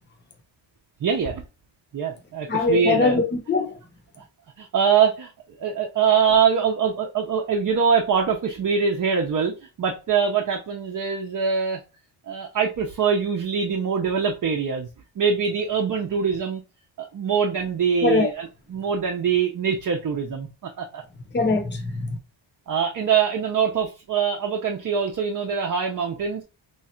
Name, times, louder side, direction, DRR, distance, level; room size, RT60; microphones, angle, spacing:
voice 1, 1.0-1.4 1.9-3.2 4.6-5.3 5.6-11.8 12.3-14.9 15.2-16.6 17.0-20.5 20.8-21.0 22.7-26.4, right 6 dB, 45° right, 0.6 m, -23 dB
voice 2, 2.5-3.8 18.0-18.3 21.3-22.1, left 3 dB, 25° left, 0.8 m, -22 dB
3.1 x 2.4 x 4.3 m
wide cardioid pair, 140°, 46 cm